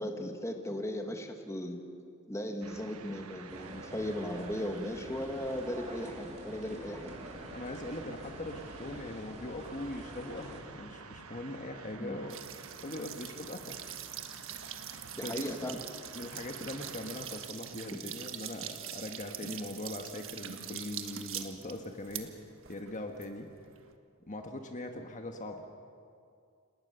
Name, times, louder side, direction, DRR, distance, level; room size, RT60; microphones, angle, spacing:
voice 1, 0.0-1.8 2.3-7.1 12.0-12.2 15.2-15.8 17.9-18.0 19.4-19.5, left 1 dB, 15° left, 4 dB, 1.7 m, -37 dB
sound 1, 2.6-17.5, right 4 dB, 80° right, 1.3 m, -51 dB
sound 2, 3.5-10.6, right 1 dB, 35° right, 3.5 m, -47 dB
voice 2, 7.3-12.4 12.8-13.7 15.2-15.7 16.1-22.3 22.7-23.5 24.3-25.6, left 1 dB, 35° left, 4 dB, 1.5 m, -41 dB
sound 3, 12.3-23.9, right 9 dB, 65° right, 1.5 m, -44 dB
29.5 x 19.0 x 6.9 m, 2.3 s
head